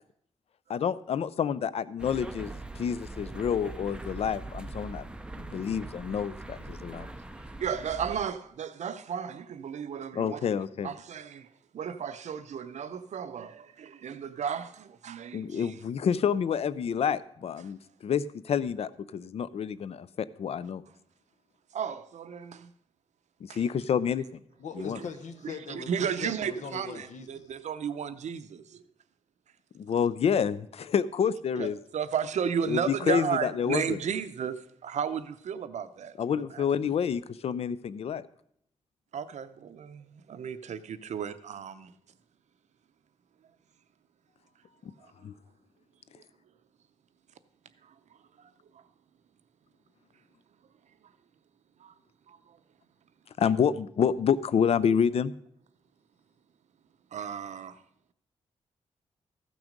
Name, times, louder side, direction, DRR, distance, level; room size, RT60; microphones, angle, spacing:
voice 1, 0.7-5.0 5.4-7.1 10.1-10.9 15.3-17.8 18.0-20.8 23.4-24.2 24.8-25.0 29.7-31.8 32.7-34.0 36.2-38.3 45.2-45.3 53.4-55.3, left 7 dB, 60° left, 0.4 m, -28 dB
sound 1, 2.0-8.2, right 2 dB, 10° right, 0.4 m, -42 dB
voice 2, 7.6-11.5 11.7-15.8 21.7-22.7 23.5-23.6 25.4-28.8 31.6-31.7 31.9-36.6 39.1-41.9 47.8-47.9 48.4-48.5 51.8-51.9 52.3-52.6 57.1-57.8, right 7 dB, 75° right, 0.6 m, -34 dB
voice 3, 24.6-27.5, left 5 dB, 85° left, 1.0 m, -41 dB
14.5 x 6.1 x 5.1 m
wide cardioid pair, 175°, 12 cm